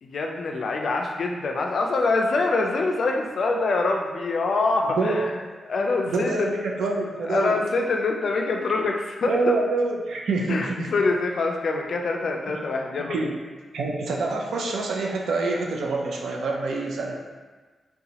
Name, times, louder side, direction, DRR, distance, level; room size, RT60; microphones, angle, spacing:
voice 1, 0.0-5.3 5.7-6.5 7.2-9.6 10.5-13.2, left 3 dB, 60° left, 2 dB, 0.4 m, -25 dB
voice 2, 4.8-5.3 6.1-7.5 9.3-10.9 12.5-12.6 13.1-13.3 13.7-17.1, right 3 dB, 85° right, 0 dB, 0.5 m, -26 dB
3.9 x 2.2 x 2.8 m, 1.4 s
wide cardioid pair, 130°, 0 cm